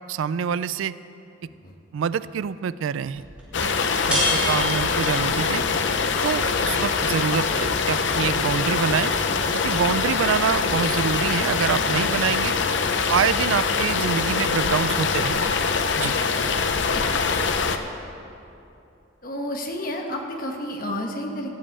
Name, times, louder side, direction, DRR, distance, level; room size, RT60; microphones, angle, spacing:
voice 1, 0.1-0.9 1.9-3.2 3.6-3.7 4.0-5.6 6.2-9.1 9.6-12.5 13.1-15.5 16.0-16.1, right 7 dB, 90° right, 16 dB, 0.3 m, -26 dB
voice 2, 1.4-1.7 16.9-17.0 19.2-21.5, left 1 dB, 45° left, 2 dB, 1.3 m, -31 dB
sound 1, 3.1-14.6, equal, 5° right, 2.6 m, -35 dB
sound 2, 3.5-17.8, left 5 dB, 70° left, 0.7 m, -23 dB
sound 3, 7.6-17.9, right 1 dB, 35° right, 2.3 m, -47 dB
16.0 x 5.4 x 8.6 m, 2.7 s
head